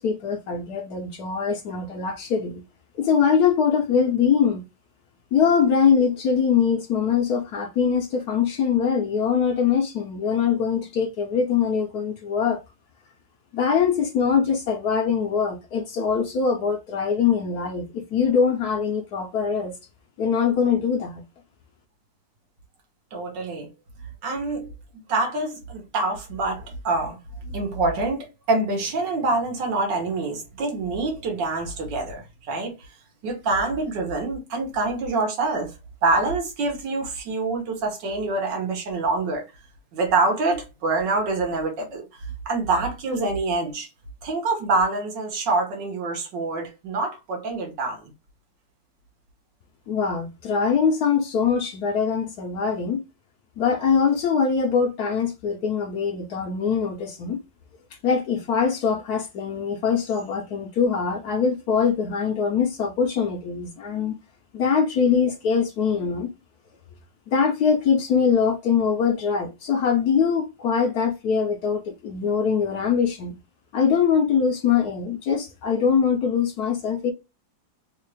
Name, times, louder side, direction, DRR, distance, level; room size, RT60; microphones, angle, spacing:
voice 1, 0.0-2.6 3.0-4.6 5.3-12.6 13.5-19.7 20.2-21.2 49.9-53.0 53.6-57.4 58.0-64.2 64.5-66.3 67.3-73.4 73.7-77.1, left 6 dB, 70° left, 1.0 m, -22 dB
voice 2, 23.1-23.7 24.2-24.7 25.1-32.7 33.2-35.7 36.0-39.4 39.9-42.1 42.5-43.9 44.2-48.0, right 3 dB, 70° right, 1.7 m, -26 dB
3.7 x 2.5 x 3.1 m
omnidirectional pair, 2.0 m